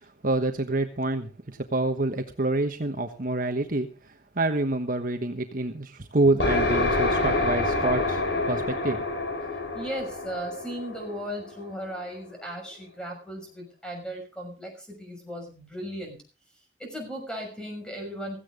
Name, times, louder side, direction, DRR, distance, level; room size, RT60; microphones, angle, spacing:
voice 1, 0.0-9.0, right 2 dB, 50° right, 6 dB, 1.3 m, -27 dB
sound 1, 6.4-12.0, left 2 dB, 75° left, 5.1 m, -27 dB
voice 2, 9.7-16.2 16.8-18.4, equal, 5° left, 2 dB, 6.3 m, -36 dB
16.5 x 15.0 x 3.8 m, 0.34 s
head